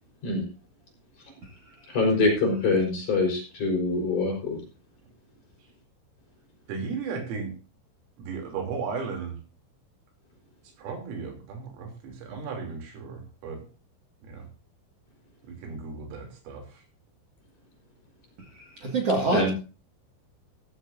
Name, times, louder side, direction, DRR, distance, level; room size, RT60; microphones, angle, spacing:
voice 1, 1.9-4.6 19.3-19.5, left 3 dB, 40° left, 6.0 m, -25 dB
voice 2, 6.7-7.5 8.2-9.4 10.8-13.7 14.2-14.5 15.5-16.8, right 5 dB, 90° right, 5.8 m, -35 dB
voice 3, 18.8-19.5, right 2 dB, 55° right, 1.8 m, -24 dB
15.5 x 14.5 x 2.7 m
omnidirectional pair, 5.7 m